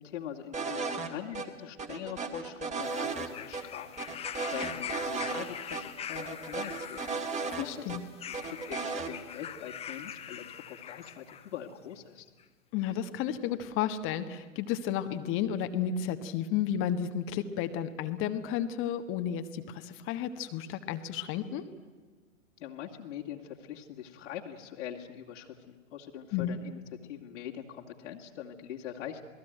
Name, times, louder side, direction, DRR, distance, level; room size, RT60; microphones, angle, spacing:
voice 1, 0.0-7.9 8.4-12.3 22.6-29.2, left 9 dB, 60° left, -1 dB, 2.3 m, -43 dB
sound 1, 0.5-1.1 1.3-1.5 1.8-3.3 3.5-3.6 4.0-5.5 5.7-5.8 6.2-8.0 8.3-9.1, right 4 dB, 15° right, 2.4 m, -35 dB
sound 2, 2.8-11.5 12.4-12.5, left 9 dB, 15° left, 1.0 m, -43 dB
voice 2, 7.5-8.0 12.7-21.6 26.3-26.5, left 9 dB, 30° left, 9 dB, 1.4 m, -32 dB
28.0 x 19.0 x 9.2 m, 1.4 s
figure-of-eight pair, 110°, 41 cm